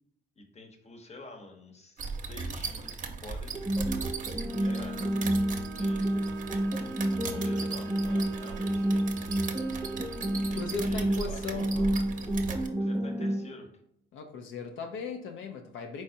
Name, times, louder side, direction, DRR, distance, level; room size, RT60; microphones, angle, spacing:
voice 1, 0.4-2.0 2.3-3.7 4.6-5.1 5.4-6.2 7.3-9.0 10.5-12.0 12.8-13.7, left 2 dB, 35° left, 3 dB, 1.0 m, -48 dB
sound 1, 2.0-12.7, right 4 dB, 40° right, 0.7 m, -38 dB
sound 2, 3.5-13.5, right 1 dB, 5° right, 0.5 m, -30 dB
Bowed string instrument, 4.5-11.0, right 10 dB, 65° right, 0.4 m, -48 dB
voice 2, 10.5-11.7 14.1-16.0, left 5 dB, 80° left, 4 dB, 0.6 m, -37 dB
4.7 x 4.1 x 2.6 m, 0.72 s
cardioid pair, 90°, 20 cm